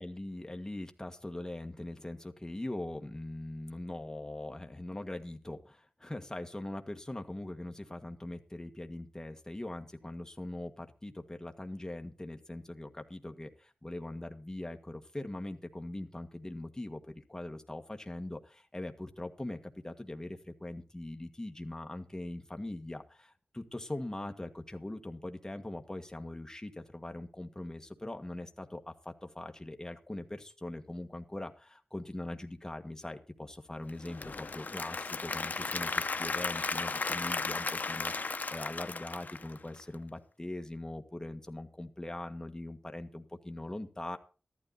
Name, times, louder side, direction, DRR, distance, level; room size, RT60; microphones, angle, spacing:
voice 1, 0.0-44.2, left 1 dB, 15° left, 5 dB, 1.6 m, -41 dB
Applause / Crowd, 33.9-40.0, left 4 dB, 50° left, 0.8 m, -35 dB
14.0 x 12.0 x 4.1 m, 0.35 s
wide cardioid pair, 100°, 4 cm